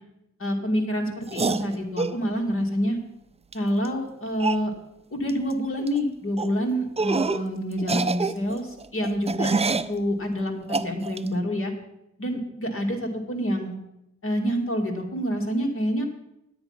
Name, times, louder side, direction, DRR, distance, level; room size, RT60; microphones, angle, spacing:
voice 1, 0.4-3.0 3.5-4.7 5.1-11.7 12.2-13.8 14.2-16.1, equal, 45° left, 2 dB, 2.2 m, -27 dB
sound 1, 1.3-2.2 3.5-3.6 3.9-4.0 4.4-4.7 5.3-5.5 5.8-6.0 6.4-6.5 7.0-7.5 7.8-9.9 10.7-11.3, right 4 dB, 20° right, 0.4 m, -26 dB
10.0 x 8.8 x 5.7 m, 0.85 s
wide cardioid pair, 85°, 29 cm